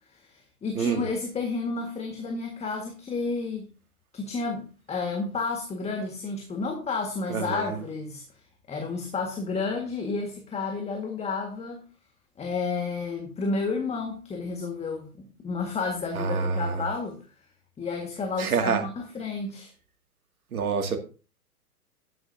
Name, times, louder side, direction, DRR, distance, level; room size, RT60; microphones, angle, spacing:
voice 1, 0.1-3.7 4.1-8.2 8.7-11.8 12.4-17.2 17.8-19.7, left 4 dB, 15° left, 1.7 m, -31 dB
voice 2, 0.7-1.1 7.3-7.8 16.2-16.8 18.4-18.8 20.5-21.0, right 5 dB, 70° right, 2.4 m, -27 dB
12.5 x 10.0 x 2.7 m
figure-of-eight pair, 115°, 46 cm